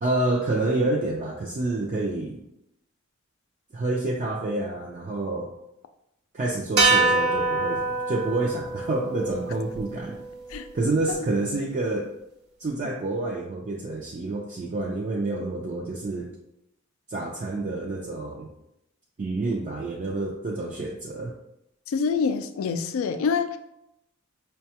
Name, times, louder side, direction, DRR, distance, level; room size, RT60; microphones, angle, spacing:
voice 1, 0.0-2.4 3.7-5.5 6.3-10.2 10.7-12.1 12.6-16.3 17.1-18.5 19.2-21.3, right 2 dB, 35° right, -1 dB, 0.4 m, -28 dB
sound 1, 6.8-11.1, right 3 dB, 55° right, 1.0 m, -26 dB
voice 2, 21.9-23.6, left 5 dB, 70° left, 8 dB, 0.3 m, -26 dB
5.4 x 2.2 x 2.8 m, 0.83 s
head